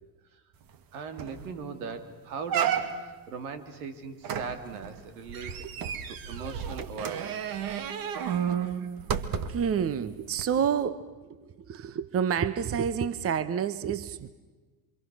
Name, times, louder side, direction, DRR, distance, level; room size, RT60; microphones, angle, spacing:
sound 1, 0.7-0.8 1.2-1.5 1.9-2.0 2.5-3.2 4.2-9.7 10.3-10.4, right 8 dB, 50° right, 2.0 m, -32 dB
voice 1, 0.9-5.7 6.1-7.6, right 5 dB, 80° right, 10 dB, 3.0 m, -39 dB
voice 2, 9.5-11.1 11.7-14.3, right 8 dB, 30° right, 16 dB, 1.1 m, -28 dB
28.5 x 25.5 x 6.3 m, 1.3 s
supercardioid pair, 95°, 43 cm